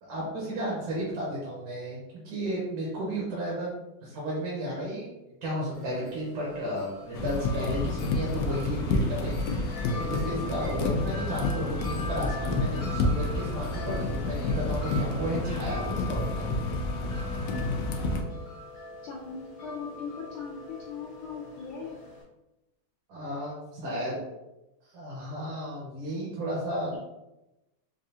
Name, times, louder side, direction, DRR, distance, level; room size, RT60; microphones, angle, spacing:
voice 1, 0.0-3.7 4.0-5.1 5.4-16.4 23.1-24.1 24.9-27.0, equal, 75° right, -5 dB, 1.9 m, -33 dB
Wind chime, 5.7-22.2, left 2 dB, 55° left, 1.6 m, -42 dB
sound 1, 7.1-18.2, left 2 dB, 90° left, 0.9 m, -29 dB
voice 2, 19.0-20.6 20.8-22.0 23.8-24.3, left 5 dB, 75° left, -4 dB, 1.3 m, -39 dB
5.3 x 2.4 x 2.7 m, 0.96 s
omnidirectional pair, 2.4 m